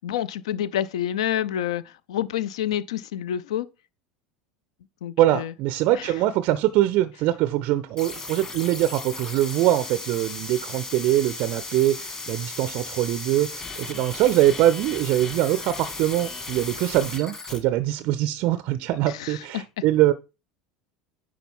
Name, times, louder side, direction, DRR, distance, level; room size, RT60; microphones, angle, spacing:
voice 1, 0.0-3.7 5.0-5.5 5.9-6.1 19.1-19.6, left 11 dB, 65° left, 0.4 m, -28 dB
voice 2, 5.2-20.1, right 14 dB, 45° right, 0.4 m, -23 dB
sound 1, 8.0-17.6, left 3 dB, 25° left, 1.7 m, -36 dB
9.8 x 3.8 x 3.6 m
figure-of-eight pair, 70°, 3 cm